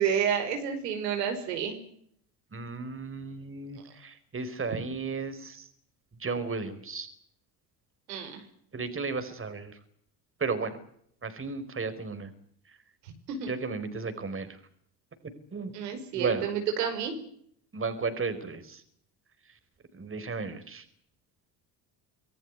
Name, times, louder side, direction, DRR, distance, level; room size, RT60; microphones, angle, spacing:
voice 1, 0.0-1.8 8.1-8.4 13.0-13.1 13.4-13.5 15.7-17.2, right 8 dB, 85° right, 5 dB, 5.4 m, -30 dB
voice 2, 2.5-5.6 6.2-7.1 8.7-9.7 10.4-10.8 11.2-12.3 13.5-14.5 15.5-15.7 16.1-16.5 17.7-18.8 20.0-20.8, right 4 dB, 25° right, 10 dB, 4.5 m, -34 dB
25.5 x 15.5 x 9.7 m, 0.66 s
hypercardioid pair, 75°, 48 cm